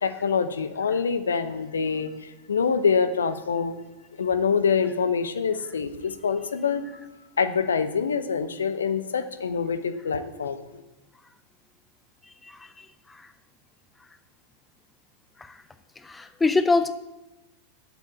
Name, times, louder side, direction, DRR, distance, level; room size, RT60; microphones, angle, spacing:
voice 1, 0.0-3.8 4.2-6.9 7.4-10.8, left 6 dB, 70° left, 11 dB, 0.7 m, -25 dB
voice 2, 12.5-12.9 15.5-15.6 16.0-16.9, left 3 dB, 10° left, 12 dB, 0.5 m, -24 dB
8.0 x 7.1 x 8.5 m, 1.1 s
figure-of-eight pair, 90°, 0 cm